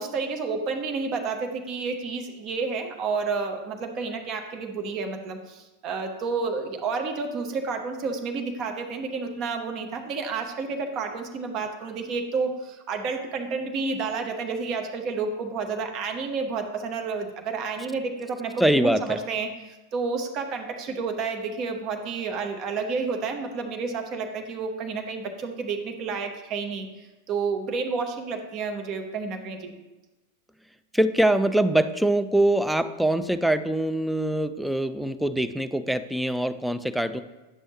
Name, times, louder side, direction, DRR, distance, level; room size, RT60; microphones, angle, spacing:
voice 1, 0.0-29.7, right 4 dB, 35° right, 4 dB, 1.0 m, -30 dB
voice 2, 18.6-19.2 30.9-37.2, right 1 dB, ahead, 10 dB, 0.4 m, -23 dB
9.7 x 6.3 x 3.0 m, 1.1 s
figure-of-eight pair, 90°, 0 cm